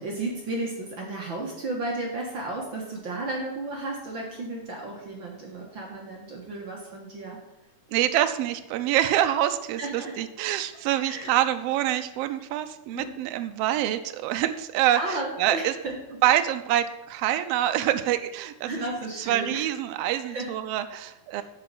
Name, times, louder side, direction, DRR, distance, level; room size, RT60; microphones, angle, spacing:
voice 1, 0.0-7.4 9.8-10.1 11.0-11.3 12.9-13.1 14.9-15.9 18.6-19.7 20.2-20.5 21.3-21.4, right 2 dB, 45° right, -1 dB, 1.9 m, -33 dB
voice 2, 7.9-15.7 16.2-18.7 19.2-21.4, right 12 dB, 80° right, 9 dB, 1.4 m, -26 dB
9.5 x 4.8 x 7.8 m, 0.95 s
omnidirectional pair, 3.4 m